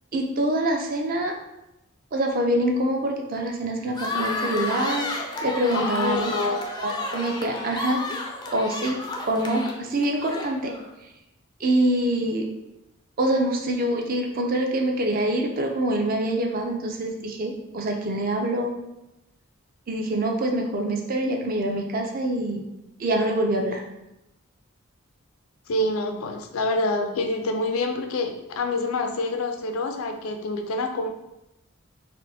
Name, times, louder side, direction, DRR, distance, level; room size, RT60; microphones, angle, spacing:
voice 1, 0.1-1.3 2.1-5.1 5.4-6.4 6.8-8.0 8.5-9.0 9.3-10.7 11.6-12.5 13.2-18.7 19.9-22.6 23.0-23.8, right 1 dB, 45° right, 2 dB, 0.4 m, -25 dB
sound 1, 3.9-10.9, left 2 dB, 20° left, 0.3 m, -31 dB
voice 2, 5.7-6.7 25.7-31.1, left 2 dB, 90° left, 5 dB, 0.4 m, -27 dB
4.2 x 2.1 x 2.7 m, 0.92 s
head